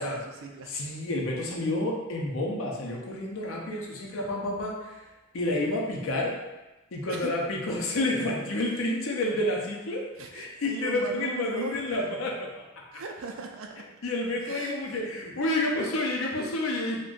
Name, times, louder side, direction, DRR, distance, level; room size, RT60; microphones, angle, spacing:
voice 1, 0.0-0.8 7.1-7.3 8.7-8.8 10.1-12.1 12.9-13.8 14.4-15.0, right 3 dB, 70° right, 3 dB, 0.4 m, -39 dB
voice 2, 0.7-5.0 5.3-6.3 6.9-10.0 10.3-12.6 12.9-13.0 14.0-17.0, left 1 dB, 80° left, -1 dB, 0.6 m, -29 dB
2.5 x 2.2 x 3.7 m, 1.0 s
head